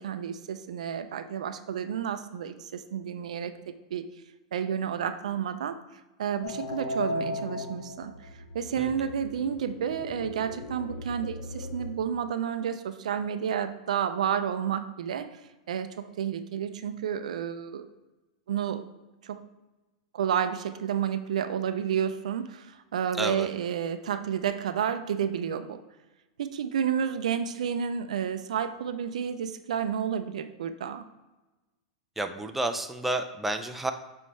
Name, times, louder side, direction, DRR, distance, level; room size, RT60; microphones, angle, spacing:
voice 1, 0.0-3.5 3.9-4.1 4.5-5.8 6.2-8.3 8.5-15.4 15.7-17.9 18.5-18.8 19.2-19.4 20.1-25.8 26.4-31.0, right 8 dB, 75° right, 10 dB, 0.5 m, -30 dB
sound 1, 6.4-11.9, left 2 dB, 70° left, 0.8 m, -37 dB
voice 2, 8.8-9.1 23.2-23.5 32.2-33.9, right 2 dB, 5° right, 6 dB, 0.5 m, -31 dB
7.1 x 4.3 x 3.2 m, 1.1 s
hypercardioid pair, 110°, 4 cm